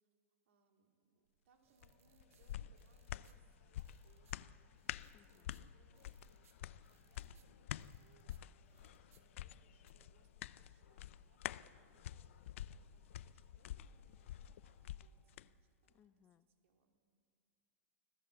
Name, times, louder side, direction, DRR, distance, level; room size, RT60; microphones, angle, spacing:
voice 1, 0.4-4.6 5.1-17.0, right 6 dB, 70° right, 2 dB, 3.5 m, -75 dB
sound 1, 1.2-9.9, right 9 dB, 90° right, 1.4 m, -77 dB
sound 2, 1.6-15.4, right 3 dB, 40° right, 4.2 m, -78 dB
sound 3, 1.8-15.5 15.9-16.0, left 12 dB, 70° left, 0.5 m, -49 dB
voice 2, 5.1-5.7 15.9-16.5, left 9 dB, 25° left, 15 dB, 0.6 m, -70 dB
25.5 x 16.0 x 7.6 m, 2.3 s
supercardioid pair, 155°, 7 cm